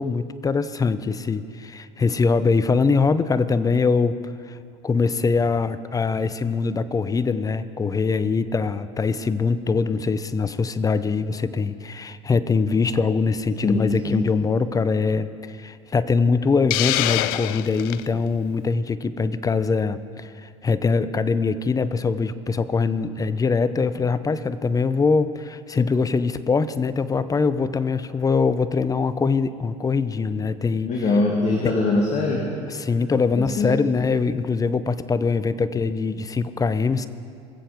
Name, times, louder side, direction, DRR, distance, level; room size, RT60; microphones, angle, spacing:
voice 1, 0.0-4.2 4.5-4.6 4.8-30.9 32.8-37.1, left 4 dB, 20° left, 14 dB, 0.6 m, -23 dB
voice 2, 13.6-14.3 30.8-32.5 33.3-33.8, left 2 dB, 45° left, -1 dB, 2.0 m, -22 dB
Hiss, 16.7-18.1, left 16 dB, 65° left, 0.4 m, -24 dB
22.0 x 7.8 x 5.1 m, 2.4 s
hypercardioid pair, 75°, 16 cm